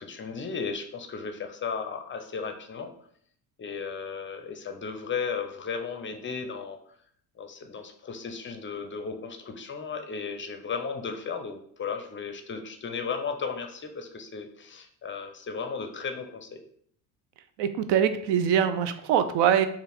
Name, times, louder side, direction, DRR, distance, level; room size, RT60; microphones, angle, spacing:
voice 1, 0.0-2.9 3.6-6.8 7.4-16.6, left 5 dB, 30° left, 6 dB, 0.5 m, -35 dB
voice 2, 17.6-19.7, right 9 dB, 70° right, 11 dB, 0.5 m, -23 dB
4.2 x 2.5 x 3.4 m, 0.63 s
supercardioid pair, 80°, 44 cm